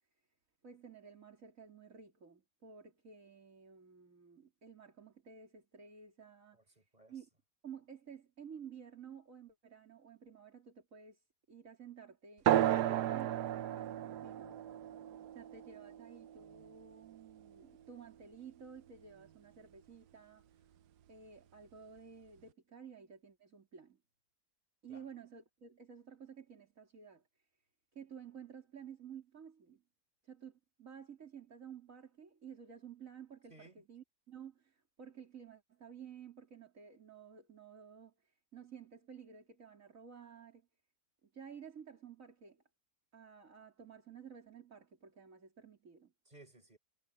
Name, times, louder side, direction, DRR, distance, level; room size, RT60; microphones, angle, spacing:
voice 1, 0.6-6.8 7.1-7.3 7.6-11.2 11.5-14.6 15.3-20.7 21.1-24.0 24.8-27.2 28.0-29.8 30.2-40.7 41.3-42.6 43.1-46.1, right 7 dB, 55° right, 3.6 m, -53 dB
voice 2, 6.5-7.1 24.9-25.0 33.5-33.8 46.3-46.8, right 2 dB, 25° right, 5.5 m, -59 dB
sound 1, 12.5-17.5, right 12 dB, 85° right, 1.3 m, -34 dB
omnidirectional pair, 1.7 m